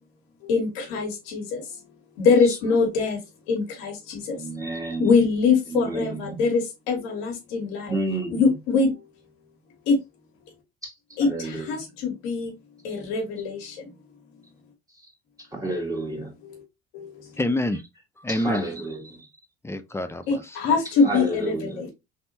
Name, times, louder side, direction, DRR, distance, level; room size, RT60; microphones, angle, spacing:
voice 1, 0.4-1.6 2.2-3.2 3.5-4.4 5.0-7.9 8.3-9.0 9.9-10.0 11.2-12.5 12.8-13.9 16.4-16.6 16.9-17.3 20.3-21.9, left 4 dB, 80° left, 1.5 m, -23 dB
voice 2, 4.3-5.1 5.7-6.5 7.9-8.5 10.8-11.8 12.9-13.0 14.9-15.1 15.4-16.3 18.3-19.3 20.8-21.9, right 2 dB, 10° right, 1.7 m, -31 dB
voice 3, 17.4-17.8 18.2-18.7 19.6-20.8, left 1 dB, 10° left, 0.5 m, -27 dB
3.5 x 2.7 x 2.7 m
supercardioid pair, 75°, 30 cm